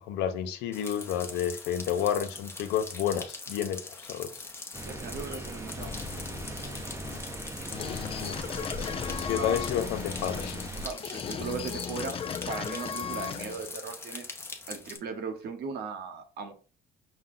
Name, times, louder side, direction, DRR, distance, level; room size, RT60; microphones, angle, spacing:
voice 1, 0.0-4.3 8.2-8.4 9.2-10.6, left 9 dB, 85° left, 8 dB, 0.7 m, -30 dB
sound 1, 0.7-15.0, left 3 dB, 15° left, 0.8 m, -43 dB
sound 2, 4.7-10.9, right 1 dB, 15° right, 0.7 m, -39 dB
voice 2, 4.8-5.9 6.4-6.5 9.3-9.6 10.8-12.1 12.5-14.3 14.7-16.5, right 5 dB, 70° right, 5 dB, 1.1 m, -38 dB
sound 3, 5.8-13.7, left 7 dB, 35° left, 0.4 m, -37 dB
5.5 x 2.2 x 3.8 m, 0.37 s
cardioid pair, 110°, 17 cm